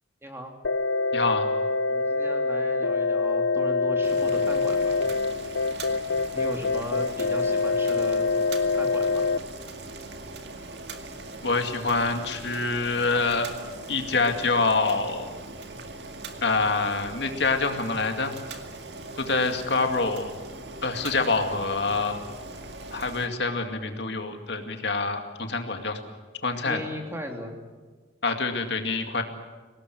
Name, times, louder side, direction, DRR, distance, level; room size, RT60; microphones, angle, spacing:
voice 1, 0.2-0.5 1.9-5.0 6.3-8.2 8.7-9.3 26.6-27.5, equal, 15° right, 2 dB, 3.0 m, -37 dB
sound 1, 0.6-9.4, left 3 dB, 80° left, 0.7 m, -25 dB
voice 2, 1.1-1.5 11.4-13.5 13.9-15.3 16.4-18.3 19.2-20.3 20.8-22.2 22.9-26.0 26.4-26.8 28.2-29.2, left 3 dB, 65° left, 5 dB, 2.3 m, -26 dB
Boiling, 4.0-23.3, right 2 dB, 65° right, 2.1 m, -40 dB
24.0 x 19.0 x 9.5 m, 1.4 s
head